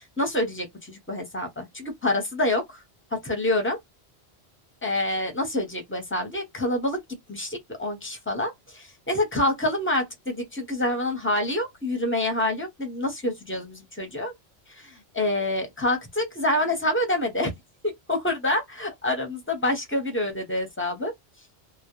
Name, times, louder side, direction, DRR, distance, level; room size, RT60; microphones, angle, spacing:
voice 1, 0.0-2.8 3.2-3.8 4.8-7.0 7.3-14.3 14.7-17.5 17.8-21.1, left 1 dB, 15° left, 0.6 m, -27 dB
2.2 x 2.0 x 2.9 m
omnidirectional pair, 1.1 m